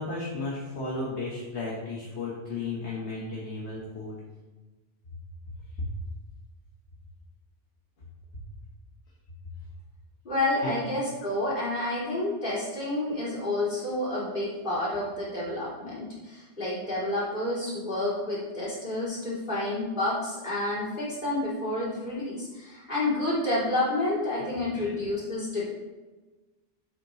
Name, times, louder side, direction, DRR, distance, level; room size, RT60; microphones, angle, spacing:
voice 1, 0.0-4.2 5.8-5.9 10.6-10.7 24.4-24.5 24.7-24.9, left 3 dB, 65° left, -5 dB, 1.6 m, -34 dB
voice 2, 10.2-25.7, left 2 dB, 45° left, -8 dB, 3.3 m, -29 dB
8.6 x 7.5 x 3.1 m, 1.2 s
omnidirectional pair, 1.2 m